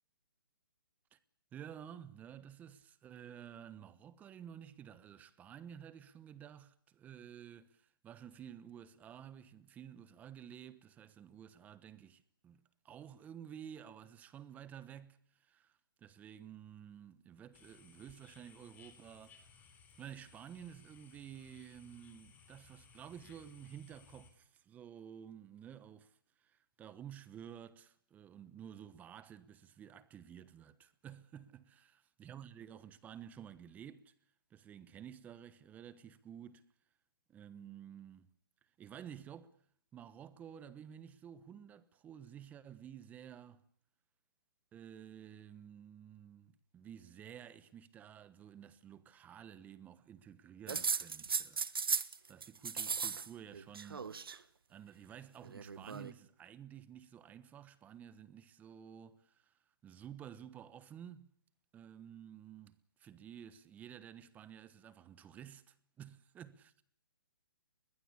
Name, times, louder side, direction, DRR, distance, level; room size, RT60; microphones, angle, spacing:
voice 1, 1.5-19.6 20.0-31.8 32.2-34.1 34.5-36.6 37.3-38.3 38.8-39.5 39.9-43.6 44.7-51.6 52.3-54.4 54.7-59.5 59.8-61.3 61.7-62.7 63.0-66.8, right 9 dB, 15° right, 1.1 m, -52 dB
sound 1, 17.5-24.3, left 6 dB, 15° left, 3.7 m, -62 dB
sound 2, 50.7-52.2 52.4-53.3 53.5-54.4 55.4-56.1, right 6 dB, 80° right, 1.4 m, -36 dB
22.0 x 19.0 x 9.9 m
hypercardioid pair, 150°, 12 cm